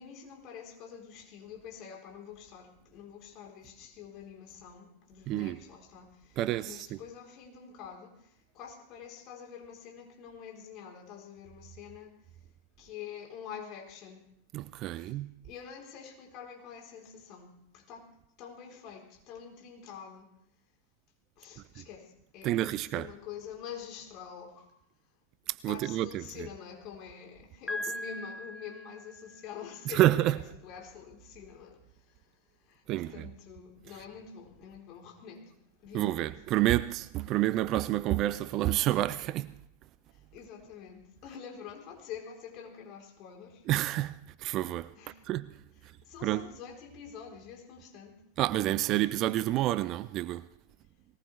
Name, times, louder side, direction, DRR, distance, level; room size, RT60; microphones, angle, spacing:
voice 1, 0.0-8.1 8.5-12.1 12.8-14.2 15.0-15.1 15.4-18.1 18.4-20.3 21.4-24.7 25.7-31.8 32.7-32.8 33.1-35.5 35.8-36.3 40.3-43.6 45.0-45.2 46.0-48.2, left 8 dB, 40° left, 4.0 m, -46 dB
voice 2, 5.3-5.6 6.4-7.0 14.5-15.3 21.8-21.9 22.4-23.1 25.5-26.5 29.8-30.4 32.9-33.3 33.9-34.0 35.9-39.5 43.7-44.9 45.3-45.5 46.2-46.5 48.4-50.5, right 14 dB, 35° right, 0.5 m, -29 dB
Piano, 27.7-29.6, left 1 dB, 10° left, 0.6 m, -40 dB
21.0 x 19.0 x 3.4 m
figure-of-eight pair, 90°, 0 cm